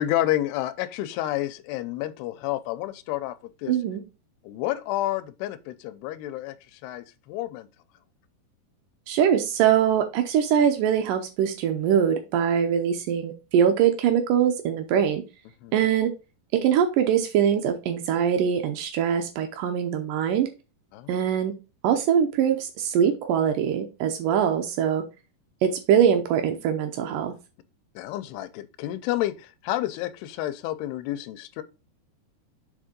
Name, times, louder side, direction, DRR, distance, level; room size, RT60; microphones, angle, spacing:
voice 1, 0.0-3.8 4.4-7.7 15.6-15.9 20.9-21.2 28.0-31.6, left 14 dB, 80° left, 2.6 m, -30 dB
voice 2, 3.7-4.0 9.1-15.2 15.7-16.1 16.5-20.5 21.1-21.5 21.8-25.0 25.6-27.3, right 8 dB, 85° right, 1.8 m, -22 dB
7.5 x 3.7 x 5.1 m
omnidirectional pair, 4.7 m